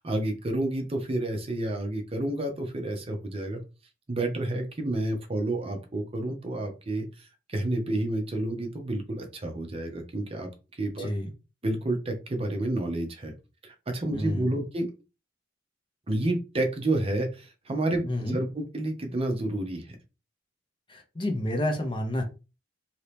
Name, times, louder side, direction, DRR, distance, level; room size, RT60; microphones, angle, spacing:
voice 1, 0.0-3.6 4.1-11.1 11.6-13.3 13.6-14.9 16.1-20.0, right 1 dB, 30° right, 0.7 m, -30 dB
voice 2, 11.0-11.3 14.1-14.5 18.1-18.4 20.9-22.2, left 1 dB, 25° left, 0.7 m, -29 dB
2.8 x 2.8 x 3.3 m
head